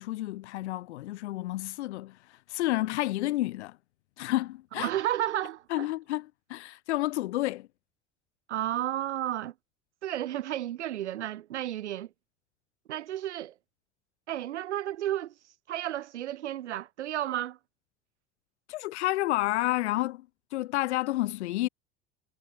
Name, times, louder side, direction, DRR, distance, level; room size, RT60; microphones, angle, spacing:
voice 1, 0.0-3.8 4.2-4.9 5.7-7.7 18.7-20.3 20.5-21.7, left 17 dB, 75° left, 0.7 m, -30 dB
voice 2, 4.8-5.9 8.5-9.5 10.0-12.1 12.9-13.5 14.3-15.3 15.7-17.6, right 12 dB, 85° right, 0.6 m, -32 dB
hypercardioid pair, 65°, 34 cm